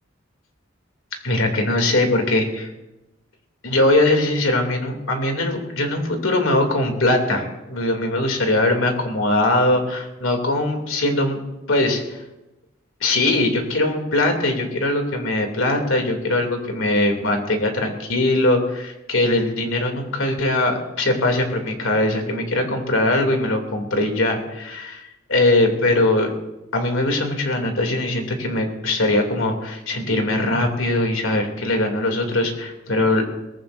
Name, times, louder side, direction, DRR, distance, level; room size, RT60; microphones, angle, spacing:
voice 1, 1.2-2.7 3.6-11.4 11.7-12.2 13.0-25.0 25.3-26.3 26.7-33.2, left 2 dB, 80° left, 3 dB, 2.7 m, -21 dB
22.0 x 18.5 x 2.6 m, 0.98 s
head